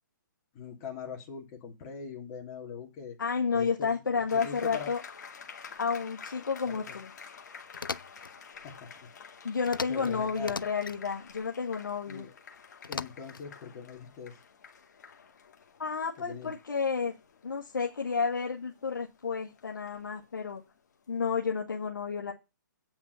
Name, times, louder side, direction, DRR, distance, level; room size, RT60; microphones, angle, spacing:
voice 1, 0.5-3.2 3.5-4.0 4.3-4.9 6.7-6.9 8.5-9.1 9.9-10.5 12.1-12.3 12.9-14.4 16.2-16.5, left 6 dB, 25° left, 0 dB, 3.0 m, -42 dB
voice 2, 3.2-5.0 5.8-7.1 9.4-12.3 15.8-17.1 17.4-20.6 21.1-22.3, left 5 dB, 75° left, 1 dB, 1.8 m, -31 dB
sound 1, 4.3-20.9, left 6 dB, 55° left, 2.2 m, -50 dB
sound 2, 7.7-8.3 9.7-10.1 10.4-11.0 12.8-13.5, left 5 dB, 90° left, 0.6 m, -38 dB
8.8 x 6.0 x 6.9 m, 0.26 s
hypercardioid pair, 140°, 11 cm